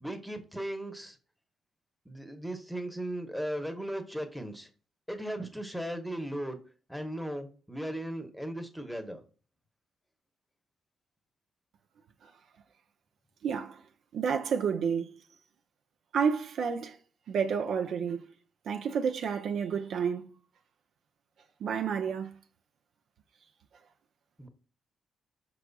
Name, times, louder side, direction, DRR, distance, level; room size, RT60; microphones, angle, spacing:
voice 1, 0.0-1.2 2.0-4.7 5.1-6.6 6.9-9.2 24.4-24.5, right 1 dB, ahead, 0.9 m, -37 dB
voice 2, 13.4-13.8 14.1-15.2 16.1-17.0 17.3-18.3 18.7-20.2 21.6-22.3, right 6 dB, 70° right, 0.5 m, -30 dB
4.7 x 3.9 x 2.3 m
supercardioid pair, 65°, 0 cm